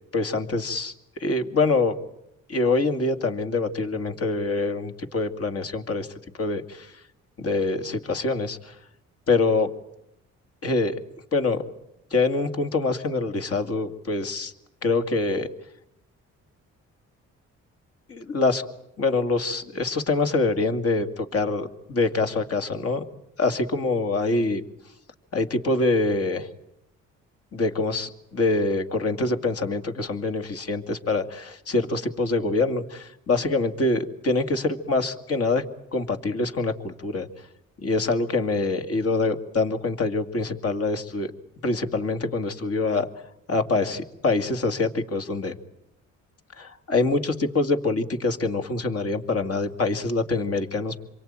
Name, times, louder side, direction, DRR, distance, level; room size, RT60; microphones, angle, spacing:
voice 1, 0.1-1.9 2.5-6.1 6.4-7.0 7.4-8.8 9.3-9.7 10.6-10.9 11.3-11.6 12.1-14.5 14.8-15.5 18.1-18.7 19.0-23.0 23.4-24.6 25.3-26.5 27.5-35.6 35.9-37.3 37.8-41.3 41.6-43.1 43.5-45.6 46.6-51.0, left 3 dB, 50° left, 7 dB, 2.5 m, -25 dB
27.0 x 23.5 x 9.0 m, 0.81 s
cardioid pair, 90°, 30 cm